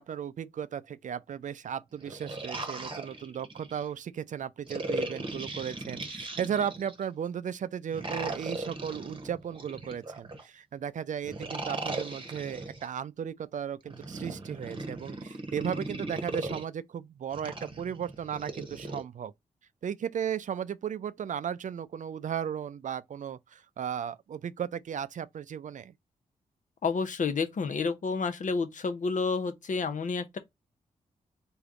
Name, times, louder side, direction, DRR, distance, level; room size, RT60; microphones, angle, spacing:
voice 1, 0.0-19.3 19.8-25.9, right 8 dB, 55° right, 0.4 m, -35 dB
sound 1, 1.9-3.9 4.7-7.0 7.9-10.4 11.2-12.9 13.8-16.6 17.3-19.0, right 2 dB, 35° right, 1.0 m, -38 dB
voice 2, 26.8-30.4, left 4 dB, 55° left, 0.7 m, -30 dB
3.4 x 2.3 x 3.8 m
supercardioid pair, 45°, 15 cm